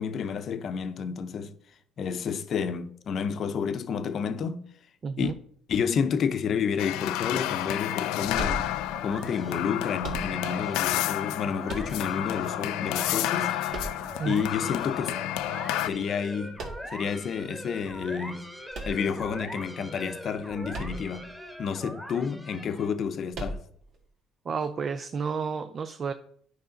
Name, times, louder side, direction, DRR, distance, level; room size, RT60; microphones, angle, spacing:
voice 1, 0.0-1.5 2.0-4.6 5.2-5.3 5.7-8.7 9.0-13.6 14.2-15.2 15.9-16.6 16.9-18.4 18.8-21.3 21.6-23.6, left 6 dB, 50° left, 0.7 m, -30 dB
voice 2, 5.0-5.3 14.2-14.5 24.5-26.1, right 5 dB, 35° right, 0.5 m, -31 dB
sound 1, 6.8-15.9, left 14 dB, 85° left, 0.3 m, -30 dB
sound 2, 7.9-23.0, equal, 5° right, 1.3 m, -43 dB
sound 3, 8.3-9.1 10.0-10.7 11.7-12.4 13.7-14.5 16.6-17.1 18.7-19.6 20.7-21.3 21.5-21.6 23.3-24.0, right 2 dB, 60° right, 1.7 m, -37 dB
9.6 x 4.9 x 3.9 m
cardioid pair, 105°, 0 cm